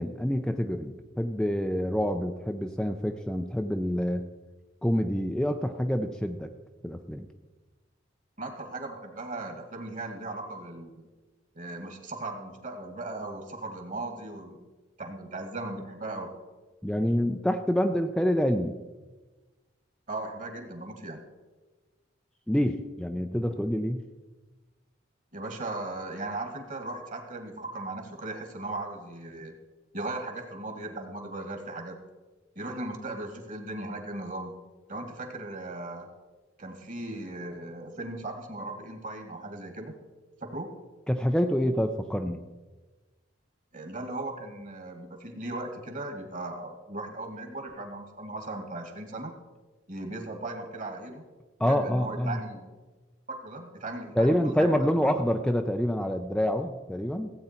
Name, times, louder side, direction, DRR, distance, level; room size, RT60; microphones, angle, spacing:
voice 1, 0.0-4.3 4.8-6.5 6.8-7.3 16.8-18.8 22.5-24.0 41.1-42.4 51.6-52.4 54.2-57.3, equal, 5° left, 5 dB, 0.5 m, -27 dB
voice 2, 8.4-11.1 11.5-14.6 15.0-16.3 20.1-21.2 25.3-29.5 29.9-32.0 32.6-34.5 34.9-36.1 36.6-39.9 40.4-40.7 43.7-49.3 49.9-51.2 51.6-52.7 53.3-55.1, right 2 dB, 45° right, 5 dB, 1.9 m, -37 dB
16.5 x 8.7 x 4.4 m, 1.2 s
head